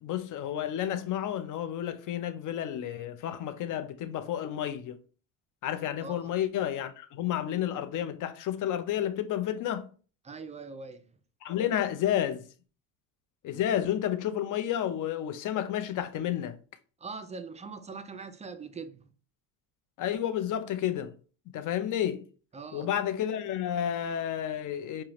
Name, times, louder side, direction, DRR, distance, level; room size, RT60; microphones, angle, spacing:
voice 1, 0.0-5.0 5.6-9.9 11.4-12.4 13.4-16.6 20.0-21.1 21.5-22.2 22.7-25.0, left 10 dB, 45° left, 0.6 m, -31 dB
voice 2, 10.2-11.2 17.0-19.0 22.5-22.9, right 4 dB, 20° right, 0.3 m, -42 dB
4.8 x 2.3 x 2.9 m
supercardioid pair, 75°, 42 cm